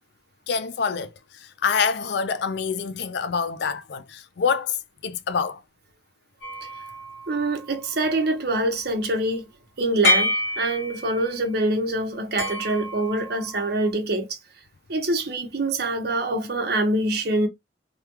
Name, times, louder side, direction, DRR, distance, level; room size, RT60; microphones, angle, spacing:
voice 1, 0.5-5.6, left 6 dB, 60° left, 0.4 m, -26 dB
sound 1, 6.4-8.1 10.0-11.3 12.4-13.9, left 2 dB, 90° left, 1.7 m, -28 dB
voice 2, 7.3-9.5 9.8-14.4 14.9-17.5, right 2 dB, 55° right, 0.9 m, -25 dB
3.5 x 2.3 x 2.9 m
head